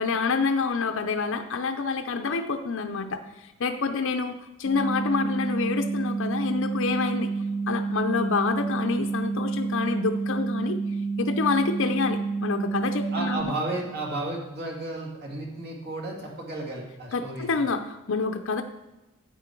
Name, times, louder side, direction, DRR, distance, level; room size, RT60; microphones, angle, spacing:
voice 1, 0.0-7.3 7.7-10.8 11.2-13.5 17.1-18.6, left 4 dB, 65° left, 6 dB, 0.6 m, -27 dB
sound 1, 4.7-13.4, right 4 dB, 25° left, 0.7 m, -29 dB
voice 2, 13.1-17.5, right 2 dB, 50° right, -1 dB, 2.3 m, -33 dB
11.0 x 8.2 x 4.5 m, 1.0 s
head